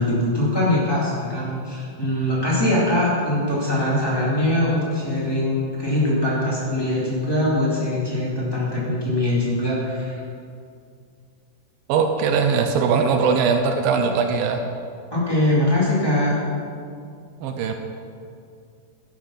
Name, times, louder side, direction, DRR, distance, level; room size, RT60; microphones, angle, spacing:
voice 1, 0.0-10.2 15.1-16.4, left 1 dB, 10° left, -7 dB, 1.0 m, -22 dB
voice 2, 11.9-14.6 17.4-17.7, right 5 dB, 90° right, 5 dB, 2.1 m, -20 dB
12.5 x 7.1 x 5.7 m, 2.3 s
omnidirectional pair, 5.0 m